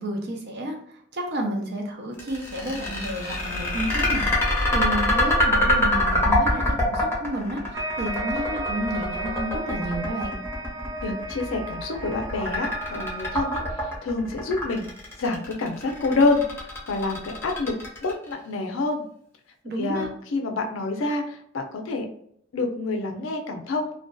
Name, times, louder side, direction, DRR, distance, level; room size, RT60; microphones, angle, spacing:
voice 1, 0.0-10.4 19.6-20.1, right 1 dB, 55° right, 1 dB, 0.6 m, -31 dB
sound 1, 2.2-18.3, left 1 dB, 10° left, 0.7 m, -25 dB
sound 2, 7.7-13.6, right 2 dB, 75° right, 1.1 m, -34 dB
voice 2, 11.0-14.9 15.2-16.4 16.9-17.7 18.0-19.0 19.8-22.1 22.5-23.9, left 3 dB, 70° left, 3 dB, 0.5 m, -27 dB
2.5 x 2.2 x 2.2 m, 0.67 s
head